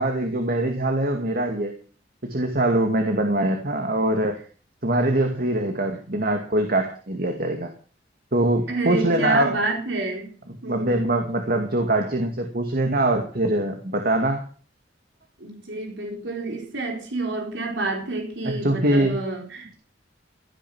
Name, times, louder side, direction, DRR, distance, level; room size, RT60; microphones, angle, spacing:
voice 1, 0.0-1.7 2.2-4.4 4.8-7.7 8.3-9.6 10.7-14.4 18.4-19.2, right 1 dB, 55° right, 4 dB, 2.3 m, -23 dB
voice 2, 8.7-10.3 10.6-11.1 15.4-19.7, right 2 dB, 75° right, 2 dB, 4.1 m, -29 dB
17.0 x 9.3 x 6.2 m, 0.39 s
head